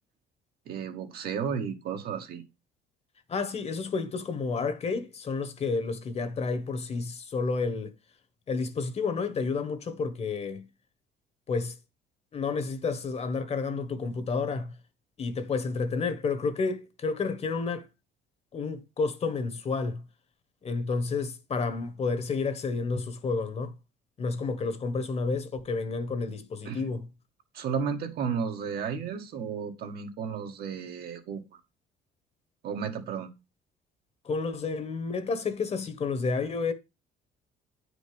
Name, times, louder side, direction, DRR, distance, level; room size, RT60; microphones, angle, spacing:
voice 1, 0.7-2.4 26.7-26.9 27.5-31.6 32.6-33.3, right 6 dB, 65° right, 1.8 m, -33 dB
voice 2, 3.3-7.9 8.5-10.7 11.5-11.8 12.3-14.7 15.2-17.9 18.5-20.1 20.6-23.7 24.2-27.1 34.2-36.7, left 4 dB, 40° left, 1.4 m, -30 dB
9.3 x 5.1 x 5.1 m
cardioid pair, 110°, 17 cm